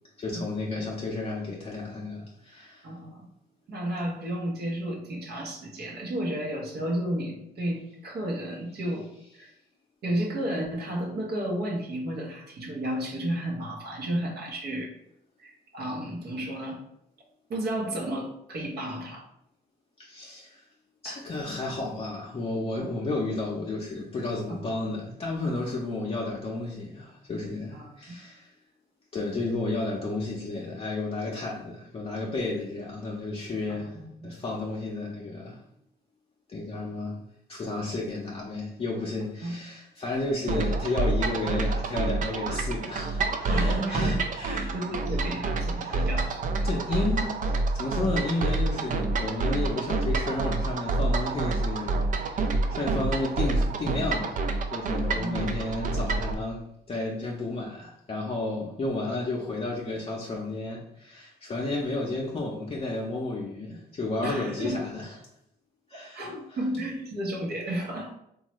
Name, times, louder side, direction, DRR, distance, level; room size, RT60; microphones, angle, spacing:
voice 1, 0.2-2.9 20.0-20.6 21.0-28.5 29.1-34.0 34.2-35.6 36.5-37.2 37.5-44.7 45.1-45.3 45.7-46.1 46.6-54.4 54.7-56.6 56.9-65.2 65.9-66.3, left 2 dB, 35° left, -3 dB, 0.6 m, -32 dB
voice 2, 2.8-3.3 3.7-9.1 9.3-9.5 10.0-14.9 15.4-16.8 17.5-19.3 21.0-21.2 24.5-24.7 27.7-28.0 33.7-34.3 39.4-39.6 43.5-44.2 44.5-47.0 55.1-55.4 64.2-64.8 65.9-68.1, right 1 dB, 65° right, -1 dB, 0.8 m, -32 dB
sound 1, 40.5-56.3, right 3 dB, 50° right, 0.4 m, -28 dB
3.1 x 2.3 x 3.0 m, 0.79 s
cardioid pair, 75°, 18 cm